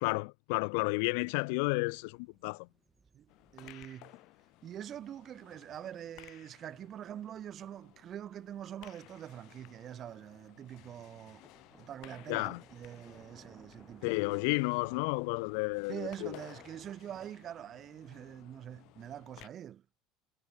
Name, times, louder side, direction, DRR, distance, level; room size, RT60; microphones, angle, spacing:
voice 1, 0.0-2.7 12.3-12.6 14.0-16.4, left 32 dB, 75° left, 0.6 m, -32 dB
sound 1, 1.9-17.3, right 4 dB, 15° right, 4.9 m, -63 dB
sound 2, 3.3-19.5, left 22 dB, 55° left, 4.1 m, -58 dB
voice 2, 3.5-4.2 4.6-11.4 11.8-14.3 15.9-19.8, right 10 dB, 35° right, 3.0 m, -45 dB
cardioid pair, 160°, 0 cm